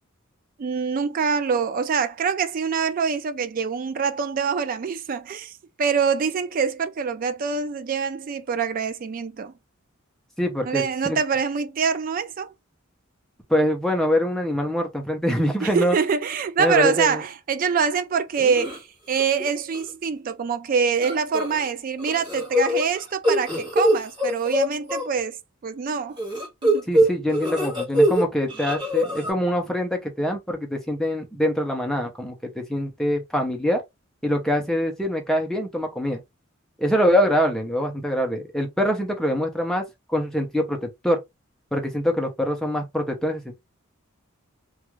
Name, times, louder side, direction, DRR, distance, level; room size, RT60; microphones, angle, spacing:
voice 1, 0.6-9.5 10.6-12.5 15.6-25.4 25.6-26.2 26.6-26.9, right 6 dB, 40° right, 0.3 m, -25 dB
voice 2, 10.4-11.2 13.5-16.0 16.6-17.2 26.9-33.8 34.2-36.2 36.8-41.2 41.7-43.5, equal, ahead, 0.6 m, -24 dB
sound 1, 18.4-18.8 19.2-19.5 19.7-19.8 21.0-21.6 22.0-25.1 26.2-28.2 28.5-29.3, equal, 20° right, 1.2 m, -23 dB
2.4 x 2.3 x 3.0 m
head